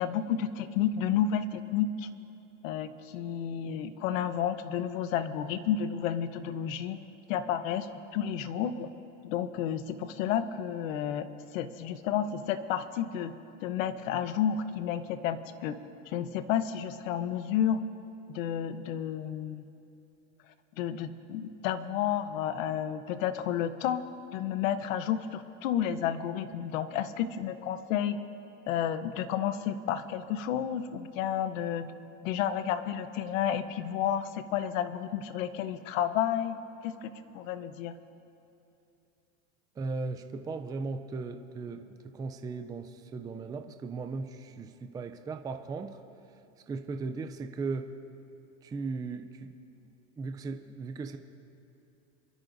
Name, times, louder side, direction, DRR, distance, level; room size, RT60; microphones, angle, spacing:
voice 1, 0.0-2.1 2.6-7.0 7.3-8.9 9.2-11.3 11.5-13.3 13.6-15.8 16.1-17.8 18.3-19.7 20.8-24.0 24.3-28.2 28.7-31.9 32.2-37.1 37.3-38.0, left 9 dB, 80° left, 11 dB, 1.0 m, -31 dB
voice 2, 39.8-46.0 46.7-47.9 48.6-51.2, right 4 dB, 10° right, 6 dB, 0.4 m, -37 dB
27.0 x 13.5 x 2.6 m, 2.8 s
supercardioid pair, 135°, 39 cm